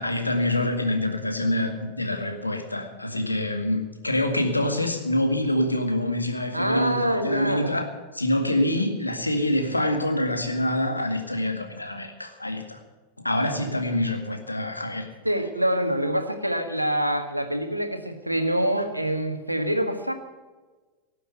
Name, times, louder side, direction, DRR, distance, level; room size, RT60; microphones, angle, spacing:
voice 1, 0.0-7.9 8.1-12.8 13.2-15.1, left 1 dB, 85° left, 5 dB, 1.9 m, -26 dB
voice 2, 6.5-7.8 15.2-20.1, right 1 dB, 90° right, 6 dB, 1.6 m, -25 dB
18.0 x 7.7 x 8.2 m, 1.3 s
figure-of-eight pair, 90°, 0 cm